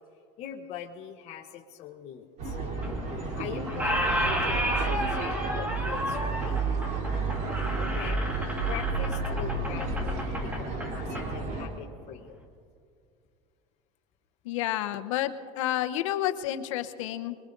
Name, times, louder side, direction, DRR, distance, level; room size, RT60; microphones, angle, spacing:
voice 1, 0.4-2.6 3.3-6.6 7.8-12.4, left 9 dB, 45° left, 2 dB, 1.0 m, -42 dB
sound 1, 2.4-11.7, right 3 dB, 50° right, 3.4 m, -31 dB
Squeak, 2.8-3.4 3.7-11.3, equal, 10° right, 1.7 m, -32 dB
voice 2, 14.4-17.4, left 13 dB, 85° left, 9 dB, 0.9 m, -30 dB
25.0 x 22.0 x 2.6 m, 2.3 s
supercardioid pair, 130°, 16 cm